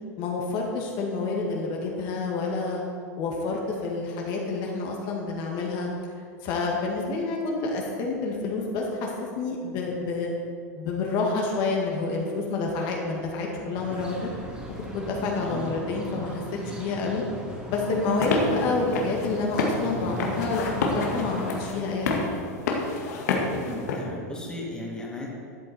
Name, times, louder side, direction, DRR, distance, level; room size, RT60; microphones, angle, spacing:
voice 1, 0.2-2.8 3.2-5.9 6.4-9.1 9.4-10.3 10.8-14.3 14.9-17.2 17.7-22.2, left 3 dB, 50° left, -1 dB, 1.9 m, -28 dB
sound 1, 13.7-21.7, equal, 10° right, 2.4 m, -38 dB
sound 2, 18.0-24.0, left 3 dB, 75° left, 1.8 m, -29 dB
voice 2, 23.5-25.3, left 1 dB, 10° left, -3 dB, 2.3 m, -36 dB
13.0 x 7.6 x 4.3 m, 2.3 s
hypercardioid pair, 110°, 9 cm